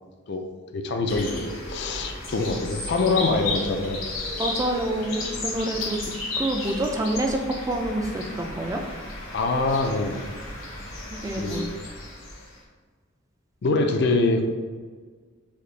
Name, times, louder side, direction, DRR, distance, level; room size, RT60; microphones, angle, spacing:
voice 1, 0.7-1.4 1.7-4.0 9.3-10.2 11.4-11.7 13.6-14.5, left 3 dB, 55° left, 5 dB, 0.4 m, -24 dB
sound 1, 1.1-12.6, left 2 dB, 75° left, 1.1 m, -34 dB
voice 2, 4.4-6.0 6.3-7.4 7.7-8.8 11.1-11.7, right 1 dB, 15° right, 2 dB, 0.3 m, -27 dB
4.2 x 2.8 x 3.2 m, 1.5 s
head